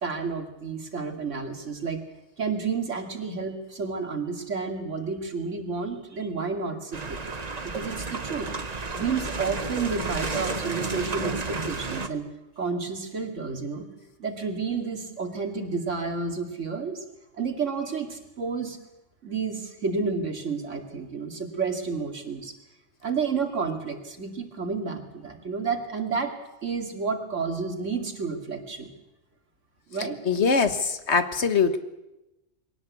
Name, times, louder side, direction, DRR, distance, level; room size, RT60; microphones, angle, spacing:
voice 1, 0.0-2.0 2.4-7.3 7.6-12.3 12.6-13.9 14.2-17.0 17.4-18.8 19.2-22.5 23.0-26.3 26.6-28.9 29.9-30.2, right 5 dB, 75° right, 5 dB, 2.7 m, -31 dB
sound 1, 6.9-12.1, right 3 dB, 35° right, 1.2 m, -32 dB
voice 2, 30.2-31.8, left 5 dB, 65° left, 10 dB, 1.6 m, -22 dB
22.5 x 18.0 x 8.4 m, 0.96 s
omnidirectional pair, 1.3 m